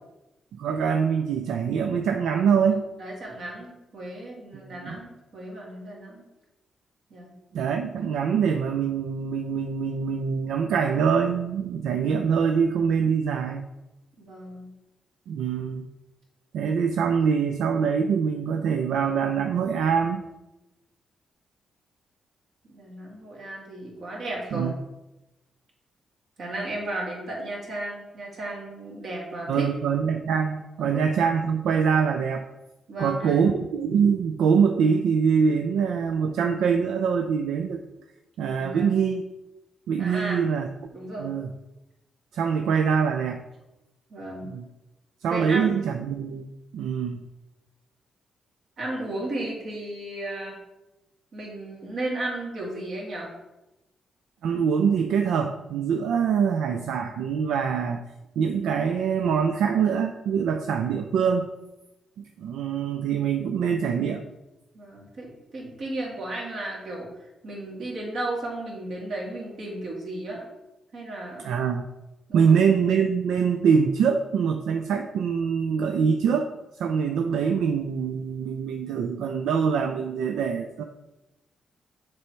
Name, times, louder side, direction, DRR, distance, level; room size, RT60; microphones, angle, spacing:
voice 1, 0.5-2.8 4.7-5.0 7.5-13.7 15.3-15.8 16.5-20.3 24.5-24.7 29.5-32.5 33.0-37.8 38.4-39.2 39.9-40.9 41.2-41.5 42.3-43.4 44.4-44.6 45.2-47.2 54.4-58.0 58.4-61.5 62.2-64.3 71.4-71.9 72.3-80.8, right 6 dB, 85° right, 5 dB, 0.4 m, -24 dB
voice 2, 3.0-6.2 7.1-7.3 14.2-14.7 22.7-24.7 26.4-29.7 30.8-31.0 32.9-33.4 38.5-38.9 40.0-40.4 40.9-41.3 44.1-44.5 45.3-45.8 48.8-50.6 51.3-53.3 64.7-67.1 67.4-70.5 70.9-71.4 72.3-72.7, right 1 dB, 65° right, -3 dB, 2.2 m, -34 dB
6.7 x 3.4 x 4.5 m, 0.99 s
cardioid pair, 85°, 0 cm